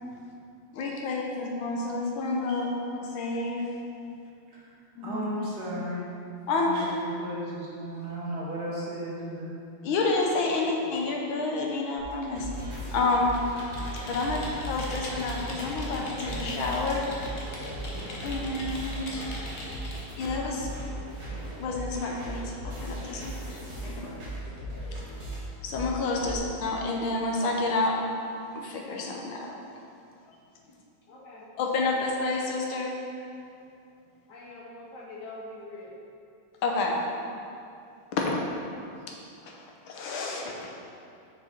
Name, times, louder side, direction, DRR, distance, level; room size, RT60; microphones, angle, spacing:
voice 1, 0.7-3.7 5.0-5.2 6.5-6.7 9.8-13.4 14.1-17.1 18.0-19.3 20.2-20.7 21.4-23.9 24.9-25.0 25.6-29.6 30.3-30.4 31.6-32.9 36.6-37.0 38.2-38.4 39.4-40.7, left 3 dB, 80° left, 0 dB, 1.6 m, -29 dB
voice 2, 5.0-6.1 6.5-9.5, equal, 55° right, -6 dB, 1.6 m, -35 dB
sound 1, 12.0-26.4, right 1 dB, 35° right, 1.4 m, -37 dB
Computer keyboard, 13.3-20.1, left 1 dB, 45° left, 0.8 m, -40 dB
voice 3, 19.2-19.5 23.8-24.2 26.2-26.3 30.7-30.8 31.1-31.5 34.3-35.9, left 2 dB, 60° left, -3 dB, 1.4 m, -44 dB
6.5 x 5.2 x 4.4 m, 2.6 s
omnidirectional pair, 2.3 m